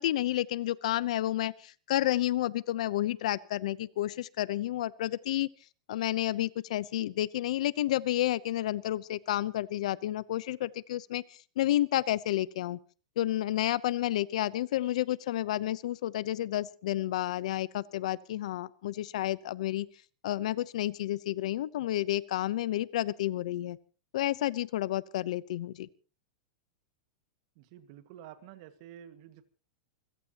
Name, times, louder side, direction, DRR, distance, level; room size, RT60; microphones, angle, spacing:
voice 1, 0.0-5.5 5.9-12.8 13.2-19.9 20.2-23.8 24.1-25.9, left 14 dB, 65° left, 19 dB, 0.8 m, -30 dB
voice 2, 27.6-29.4, right 11 dB, 45° right, 10 dB, 1.9 m, -50 dB
27.5 x 16.5 x 3.0 m, 0.36 s
supercardioid pair, 160°, 4 cm